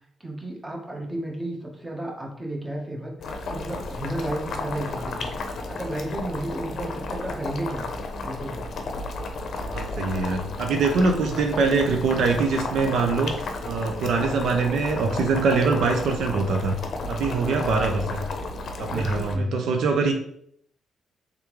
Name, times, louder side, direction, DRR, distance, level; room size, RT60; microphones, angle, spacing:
voice 1, 0.2-3.1 3.5-7.9 8.2-8.6 17.3-17.6 18.9-19.6, right 1 dB, 15° right, 0 dB, 1.0 m, -33 dB
Boiling, 3.2-19.3, left 3 dB, 60° left, 0.6 m, -33 dB
voice 2, 9.7-16.7 17.1-18.3 18.8-20.1, right 4 dB, 75° right, 4 dB, 0.5 m, -23 dB
3.6 x 3.5 x 3.1 m, 0.67 s
cardioid pair, 85°, 0 cm